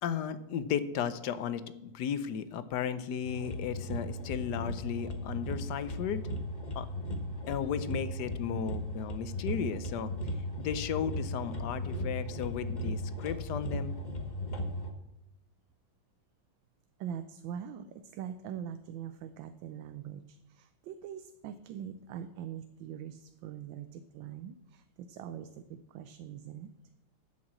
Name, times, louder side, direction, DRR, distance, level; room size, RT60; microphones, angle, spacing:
voice 1, 0.0-6.2 6.7-6.9 7.5-10.1 10.6-13.9, left 8 dB, 70° left, 13 dB, 1.2 m, -35 dB
sound 1, 3.2-14.9, left 1 dB, 30° left, 1.1 m, -37 dB
voice 2, 17.0-26.7, right 9 dB, 85° right, 10 dB, 1.3 m, -43 dB
11.0 x 6.0 x 7.6 m, 0.88 s
omnidirectional pair, 2.1 m